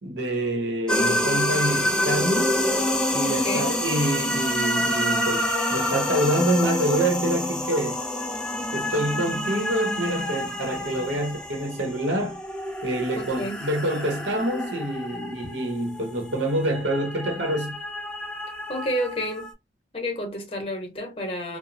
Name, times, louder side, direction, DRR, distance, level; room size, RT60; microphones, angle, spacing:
voice 1, 0.0-2.6 3.1-8.0 8.7-12.4 12.8-17.8, right 1 dB, 90° right, 0.8 m, -26 dB
sound 1, 0.9-19.5, left 1 dB, 5° left, 0.4 m, -28 dB
voice 2, 3.2-3.8 13.1-13.6 18.7-19.5 19.9-21.6, equal, 30° left, 0.8 m, -30 dB
2.8 x 2.0 x 2.6 m
head